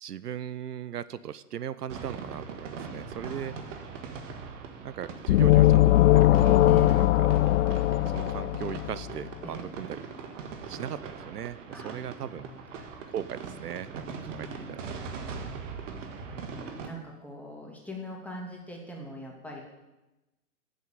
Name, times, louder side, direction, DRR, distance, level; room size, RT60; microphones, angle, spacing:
voice 1, 0.0-3.6 4.8-6.7 6.9-7.3 8.1-10.0 10.7-11.6 11.8-12.5 13.1-14.8 15.2-15.7, right 9 dB, 80° right, 16 dB, 0.7 m, -38 dB
sound 1, 1.9-16.9, right 5 dB, 50° right, 1.8 m, -41 dB
voice 2, 3.2-3.9 6.6-7.0 9.4-9.7 11.7-12.8 14.0-14.7 16.3-19.6, right 1 dB, 5° left, -1 dB, 2.5 m, -43 dB
sound 2, 5.3-9.1, left 15 dB, 55° left, 0.5 m, -20 dB
9.4 x 7.7 x 8.9 m, 1.0 s
figure-of-eight pair, 110°, 47 cm